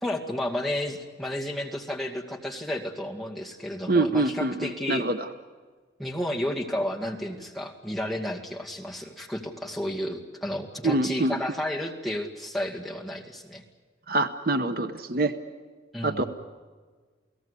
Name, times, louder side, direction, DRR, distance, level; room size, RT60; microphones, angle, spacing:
voice 1, 0.0-5.0 6.0-13.6 15.9-16.3, left 1 dB, ahead, 1 dB, 2.2 m, -32 dB
voice 2, 3.9-5.3 10.8-11.4 14.1-15.3 16.0-16.2, right 2 dB, 55° right, 9 dB, 0.9 m, -25 dB
29.5 x 17.5 x 8.3 m, 1.5 s
head